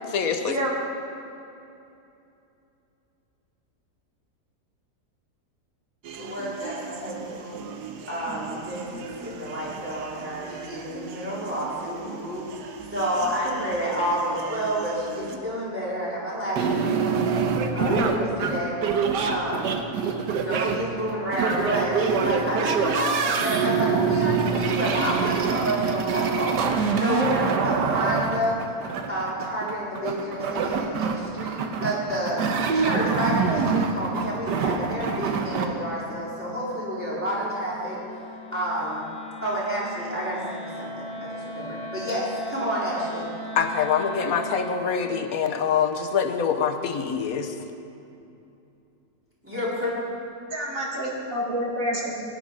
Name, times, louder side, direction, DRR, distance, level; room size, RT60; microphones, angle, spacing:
voice 1, 0.1-0.6 31.6-31.7 43.5-47.5, left 6 dB, 65° left, 6 dB, 1.2 m, -25 dB
sound 1, 6.0-15.4, right 6 dB, 75° right, 1.4 m, -40 dB
voice 2, 6.2-7.6 8.1-17.3 17.7-18.8 19.3-19.8 20.5-28.6 29.1-32.4 32.7-38.0 38.5-39.0 39.4-43.3 49.4-49.9, equal, 5° right, -9 dB, 4.0 m, -29 dB
sound 2, 16.6-35.7, right 5 dB, 90° right, 1.5 m, -25 dB
voice 3, 17.8-18.3 50.5-52.1, right 1 dB, 55° right, -3 dB, 2.6 m, -27 dB
Wind instrument woodwind instrument, 33.5-45.0, left 1 dB, 40° left, 3.0 m, -40 dB
17.0 x 10.5 x 5.3 m, 2.7 s
omnidirectional pair, 1.8 m